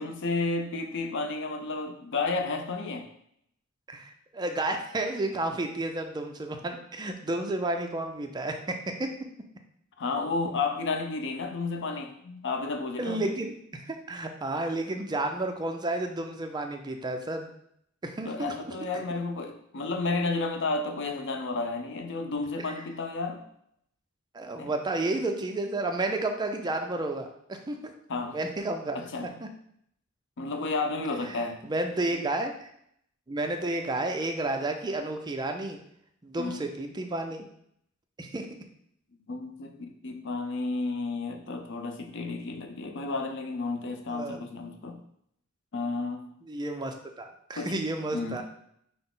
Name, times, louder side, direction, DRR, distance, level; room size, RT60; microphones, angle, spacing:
voice 1, 0.0-3.1 10.0-13.2 18.2-23.4 24.6-24.7 28.1-28.4 28.9-29.3 30.4-31.6 36.4-36.6 39.3-45.0 45.7-46.3 47.6-47.7 48.1-48.4, left 3 dB, 60° left, 5 dB, 0.5 m, -32 dB
voice 2, 3.9-9.1 13.0-17.5 18.0-19.0 24.3-27.8 28.2-29.0 29.4-29.5 31.3-32.7 33.3-35.8 36.2-37.4 38.2-38.5 44.1-44.4 46.4-48.4, right 2 dB, 20° right, 4 dB, 0.4 m, -31 dB
5.7 x 2.0 x 3.7 m, 0.71 s
head